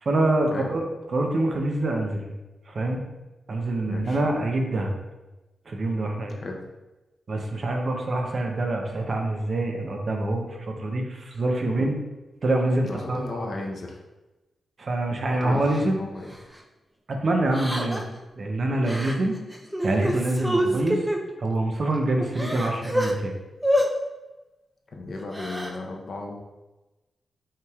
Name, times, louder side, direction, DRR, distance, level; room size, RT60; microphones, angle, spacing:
voice 1, 0.0-0.8 1.1-2.3 2.7-3.0 3.5-4.9 5.7-6.4 7.3-12.0 12.4-13.5 14.8-16.0 17.1-18.0 18.4-19.4 19.8-21.0 21.4-23.3, right 2 dB, 50° right, 2 dB, 0.6 m, -25 dB
voice 2, 3.8-4.2 6.4-6.6 12.8-14.0 15.4-16.3 20.6-20.8 24.9-26.4, left 2 dB, 55° left, 1 dB, 0.7 m, -35 dB
Crying sobbing, 15.7-15.8 16.3-16.5 17.5-18.2 18.8-19.1 19.5-21.2 21.8-21.9 22.2-23.1 23.6-23.9 25.2-25.7, equal, 5° right, 0.5 m, -26 dB
5.5 x 3.3 x 2.4 m, 1.1 s
wide cardioid pair, 110°, 0 cm